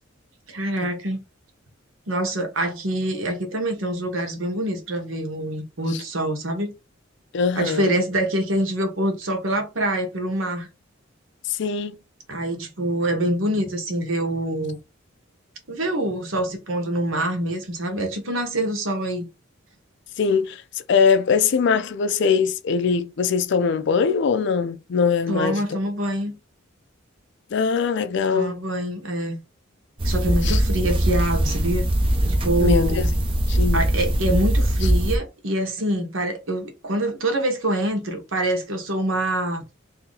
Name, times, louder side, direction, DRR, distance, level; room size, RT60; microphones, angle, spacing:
voice 1, 0.5-1.2 2.1-6.7 7.6-10.7 12.3-14.8 15.7-19.2 25.3-26.3 28.3-29.4 30.0-31.9 32.4-33.1 33.7-39.6, right 1 dB, 75° right, 1.1 m, -25 dB
voice 2, 7.3-7.9 11.5-12.0 17.9-18.0 20.2-25.8 27.5-28.6 30.4-30.6 32.6-33.0 33.5-33.8, left 5 dB, 60° left, 0.4 m, -22 dB
sound 1, 30.0-35.2, right 1 dB, 25° right, 0.6 m, -21 dB
2.8 x 2.7 x 3.9 m
head